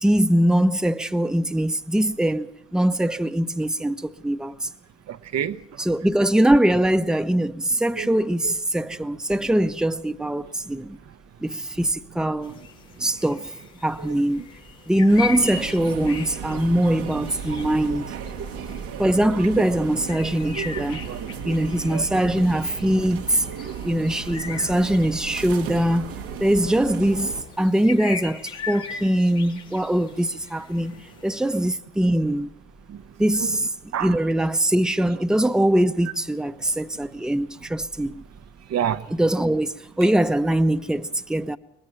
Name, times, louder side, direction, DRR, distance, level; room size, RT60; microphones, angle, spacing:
voice 1, 0.0-4.7 5.8-11.0 11.4-12.6 13.0-13.5 13.8-14.4 14.9-18.1 19.0-21.0 21.4-23.4 23.8-32.5 33.2-33.7 34.0-38.1 39.1-41.6, right 1 dB, ahead, 0.8 m, -22 dB
voice 2, 5.1-5.6 8.0-8.1 8.4-8.5 14.0-14.1 20.6-20.7 21.0-21.5 21.9-22.0 23.5-23.6 32.9-33.0 33.4-33.5 33.9-34.1 38.7-39.1, right 9 dB, 55° right, 0.8 m, -28 dB
sound 1, 12.4-31.7, left 6 dB, 80° left, 2.3 m, -40 dB
sound 2, 15.1-27.4, right 7 dB, 90° right, 1.6 m, -35 dB
23.0 x 19.5 x 5.8 m
hypercardioid pair, 50°, 31 cm